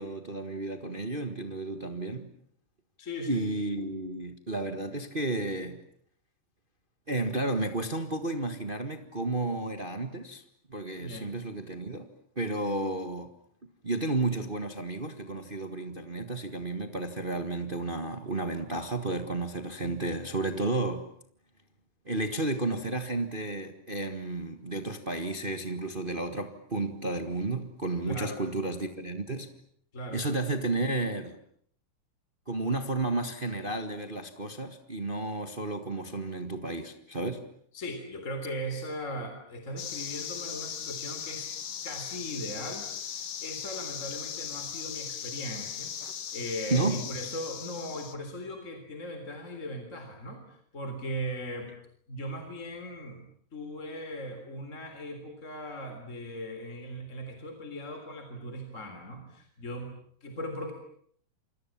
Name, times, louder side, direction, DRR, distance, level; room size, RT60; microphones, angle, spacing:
voice 1, 0.0-2.3 3.3-5.8 7.1-10.4 10.7-12.1 12.3-13.3 13.8-21.1 22.0-29.5 30.1-31.4 32.5-37.4 46.7-47.0, right 2 dB, 50° right, 0.6 m, -32 dB
voice 2, 3.0-3.4 11.0-11.3 28.0-28.4 29.9-30.2 37.7-41.5 41.8-51.7 52.1-53.3 53.5-59.9 60.2-60.7, equal, 20° left, 3.7 m, -38 dB
sound 1, 39.8-48.1, left 8 dB, 70° left, 3.5 m, -38 dB
28.5 x 25.5 x 7.4 m
omnidirectional pair, 4.0 m